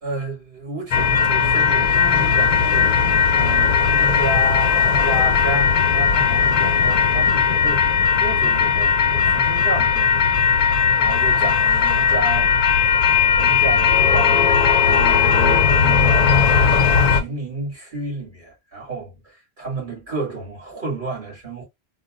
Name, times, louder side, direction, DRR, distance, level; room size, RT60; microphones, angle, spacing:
voice 1, 0.0-3.1 3.3-7.9 8.2-12.6 13.3-21.6, right 2 dB, 50° right, 2.4 m, -31 dB
sound 1, 0.9-17.2, left 6 dB, 50° left, 0.5 m, -17 dB
4.1 x 2.2 x 2.4 m
omnidirectional pair, 1.1 m